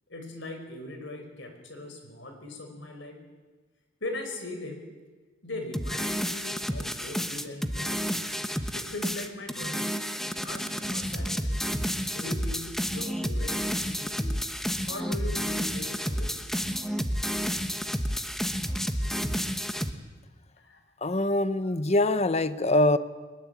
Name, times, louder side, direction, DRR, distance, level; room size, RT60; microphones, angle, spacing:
voice 1, 0.1-3.3 4.0-4.8 5.4-8.4 8.7-10.0 10.4-11.8 12.0-16.4 20.6-20.8, left 2 dB, 70° left, 5 dB, 5.4 m, -40 dB
sound 1, 5.7-19.9, equal, ahead, 1.2 m, -30 dB
voice 2, 21.0-23.0, left 1 dB, 35° left, 13 dB, 0.9 m, -24 dB
22.5 x 21.0 x 8.4 m, 1.3 s
head